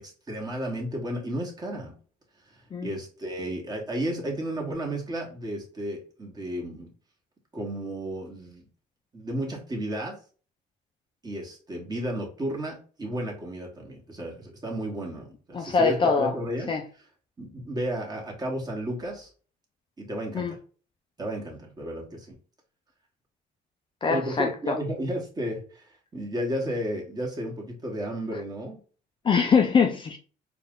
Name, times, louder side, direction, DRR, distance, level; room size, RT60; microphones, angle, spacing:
voice 1, 0.0-1.9 2.5-6.9 7.5-8.7 9.1-10.2 11.2-16.7 17.4-19.3 20.0-20.6 21.2-22.4 24.1-28.8, right 1 dB, 25° right, 0 dB, 1.5 m, -33 dB
voice 2, 15.5-16.3 16.7-16.8 20.3-20.5 24.0-24.7 29.2-30.2, left 5 dB, 30° left, 3 dB, 0.5 m, -23 dB
4.2 x 2.5 x 3.7 m, 0.39 s
cardioid pair, 110°, 17 cm